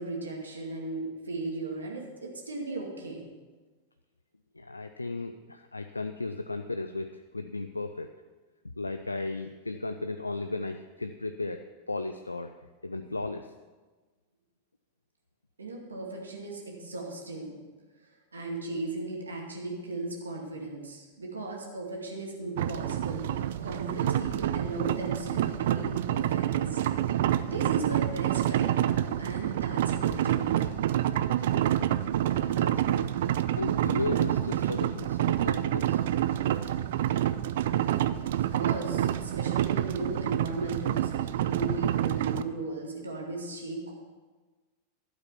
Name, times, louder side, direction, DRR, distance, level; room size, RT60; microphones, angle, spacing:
voice 1, 0.0-3.3 15.6-17.5 18.3-27.0 27.4-30.7 38.3-43.9, right 2 dB, 75° right, -1 dB, 2.2 m, -37 dB
voice 2, 4.6-8.1 8.8-11.6 11.9-12.5 12.8-13.5 32.5-33.1 33.6-36.0, left 3 dB, 80° left, 8 dB, 0.4 m, -35 dB
sound 1, 22.6-42.4, right 12 dB, 55° right, 0.4 m, -28 dB
11.5 x 8.2 x 5.8 m, 1.3 s
figure-of-eight pair, 90°, 0 cm